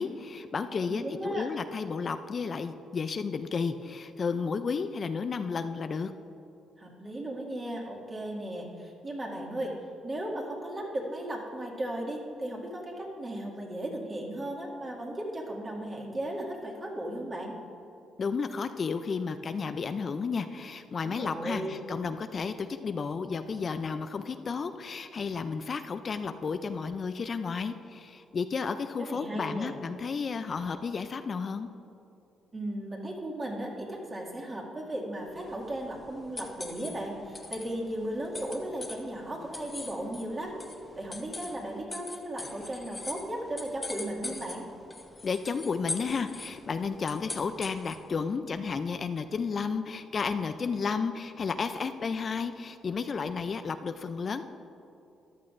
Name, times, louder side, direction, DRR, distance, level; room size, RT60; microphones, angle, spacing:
voice 1, 0.0-6.1 18.2-31.7 45.2-54.4, left 5 dB, 45° left, 9 dB, 0.4 m, -32 dB
voice 2, 0.8-1.5 6.8-9.7 10.0-17.6 21.0-21.8 29.1-29.8 32.5-40.5 41.0-44.7, right 1 dB, 30° right, -2 dB, 2.2 m, -36 dB
sound 1, 35.3-48.1, left 3 dB, 25° left, 1.0 m, -43 dB
14.0 x 11.0 x 2.6 m, 2.7 s
cardioid pair, 90°, 0 cm